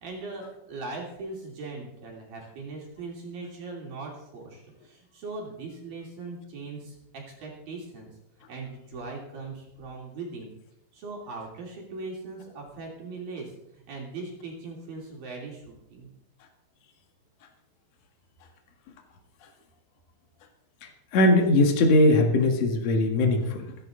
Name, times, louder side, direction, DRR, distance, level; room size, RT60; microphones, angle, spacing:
voice 1, 0.0-8.1 8.5-10.5 10.9-15.6 15.9-16.1, right 3 dB, 50° right, -2 dB, 4.2 m, -39 dB
voice 2, 20.8-23.8, left 1 dB, 55° left, 3 dB, 1.9 m, -21 dB
26.5 x 10.5 x 3.9 m, 0.83 s
omnidirectional pair, 5.9 m